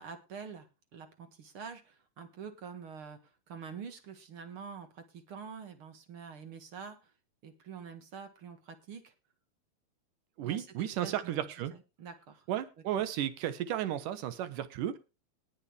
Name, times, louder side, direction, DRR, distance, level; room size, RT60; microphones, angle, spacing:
voice 1, 0.0-7.1 7.4-9.1 10.4-11.4 11.7-12.5 13.0-13.1, right 6 dB, 50° right, 8 dB, 1.9 m, -46 dB
voice 2, 10.4-11.7 12.5-15.0, right 11 dB, 70° right, 12 dB, 2.6 m, -34 dB
20.0 x 7.1 x 3.4 m, 0.29 s
omnidirectional pair, 4.1 m